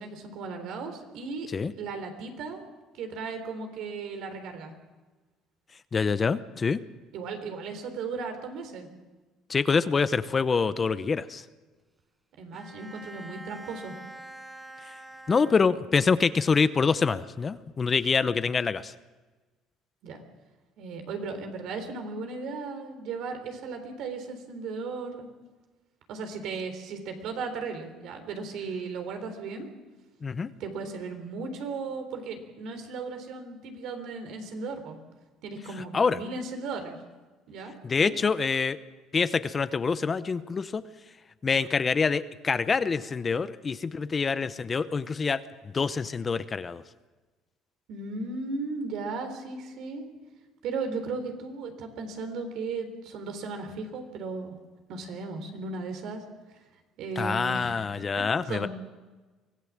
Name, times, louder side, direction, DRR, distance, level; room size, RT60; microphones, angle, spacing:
voice 1, 0.0-1.5 1.8-2.6 3.0-4.7 7.1-8.9 12.4-13.9 20.0-20.2 20.8-25.3 26.1-29.7 30.6-35.0 35.4-37.0 37.5-38.1 47.9-50.1 50.6-54.5 54.9-56.2 57.0-57.9 58.2-58.7, right 4 dB, 65° right, 7 dB, 3.7 m, -36 dB
voice 2, 5.9-6.8 9.5-11.4 14.8-14.9 15.3-18.9 30.2-30.5 35.9-36.2 37.8-38.8 39.1-40.8 41.4-45.4 45.7-46.8 57.2-58.7, left 5 dB, 25° left, 13 dB, 0.7 m, -26 dB
Bowed string instrument, 12.5-16.2, right 2 dB, 10° right, 1.4 m, -46 dB
24.0 x 16.5 x 7.4 m, 1.3 s
cardioid pair, 125°, 0 cm